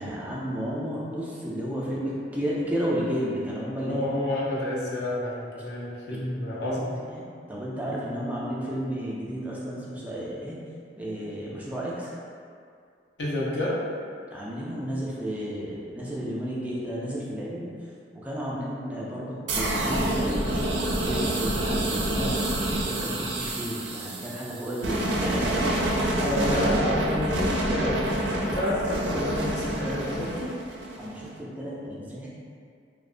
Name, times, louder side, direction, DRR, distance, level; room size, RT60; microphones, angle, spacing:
voice 1, 0.0-3.9 6.3-6.8 7.1-7.2 7.5-10.6 11.0-12.1 14.3-17.7 18.1-22.3 22.7-25.7 26.8-27.2 31.0-32.3, equal, 10° right, -6 dB, 0.3 m, -32 dB
voice 2, 3.9-7.0 13.2-13.8 26.2-28.1 28.5-30.5, left 1 dB, 75° left, -6 dB, 0.6 m, -29 dB
sound 1, 19.5-31.3, right 1 dB, 90° right, 0.4 m, -27 dB
2.7 x 2.0 x 2.4 m, 2.3 s
head